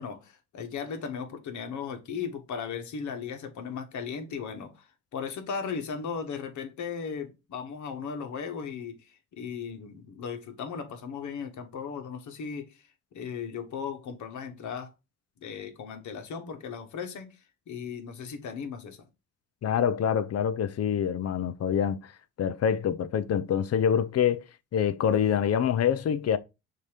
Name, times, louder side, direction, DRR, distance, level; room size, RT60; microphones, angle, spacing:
voice 1, 0.0-4.8 5.1-9.0 9.3-12.8 13.1-14.9 15.4-17.3 17.7-19.1, left 6 dB, 70° left, 1.5 m, -36 dB
voice 2, 19.6-22.0 22.4-24.4 24.7-26.4, left 8 dB, 55° left, 0.7 m, -25 dB
6.6 x 2.9 x 5.1 m
cardioid pair, 90°, 30 cm